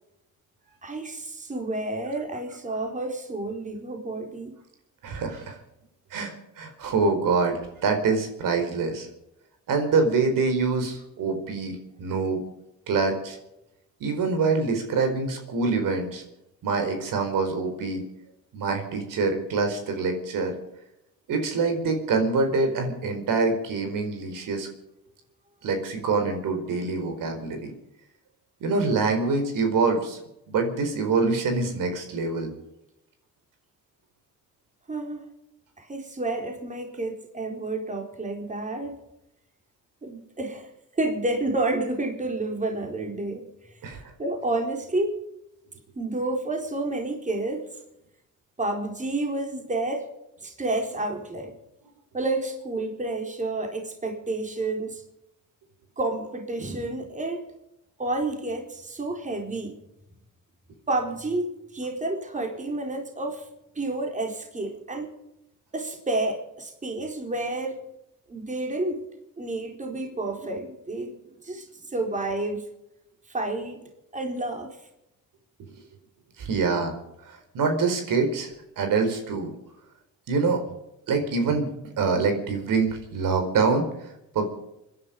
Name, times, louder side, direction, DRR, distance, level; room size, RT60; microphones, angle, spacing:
voice 1, 0.8-4.5 34.9-35.2 35.8-39.0 40.0-43.5 44.2-45.2 46.0-47.7 48.6-50.1 50.4-51.5 52.1-55.0 56.0-57.4 58.0-59.8 60.9-63.5 63.7-65.1 65.7-67.9 68.3-69.0 69.4-71.1 71.4-72.6 73.3-73.8 74.1-74.7, right 2 dB, 20° right, 2 dB, 4.0 m, -30 dB
voice 2, 5.0-5.6 6.1-9.1 9.7-12.4 12.9-13.4 14.0-16.2 16.6-18.0 18.5-20.5 21.3-24.7 25.6-27.7 28.6-30.2 30.5-32.5 43.8-44.1 76.4-77.0 77.2-78.5 78.8-79.5 80.3-80.6 81.1-81.7 82.0-84.5, right 4 dB, 70° right, 5 dB, 4.6 m, -25 dB
25.0 x 11.0 x 5.2 m, 0.84 s
cardioid pair, 95°, 34 cm